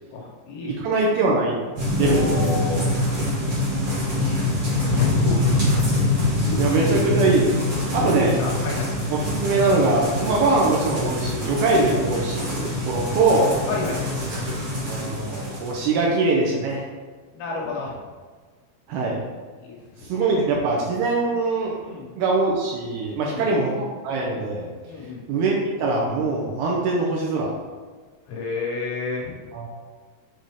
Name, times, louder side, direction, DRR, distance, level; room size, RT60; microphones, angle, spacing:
voice 1, 0.1-0.9 2.0-2.9 4.2-5.9 6.5-6.9 7.9-8.9 13.6-14.1 17.3-18.0 19.6-20.3 21.8-22.1 23.2-23.5 24.9-25.3 28.3-29.4, left 3 dB, 75° left, -2 dB, 2.6 m, -30 dB
voice 2, 0.7-1.6 1.9-2.4 6.6-7.6 7.9-8.4 9.1-13.6 14.9-16.8 18.9-19.2 20.0-21.8 22.2-24.7 25.3-27.5 29.5-29.7, right 3 dB, 80° right, -2 dB, 2.4 m, -22 dB
sound 1, 1.8-15.9, left 1 dB, 50° right, 1.6 m, -24 dB
7.5 x 3.6 x 3.5 m, 1.5 s
omnidirectional pair, 4.9 m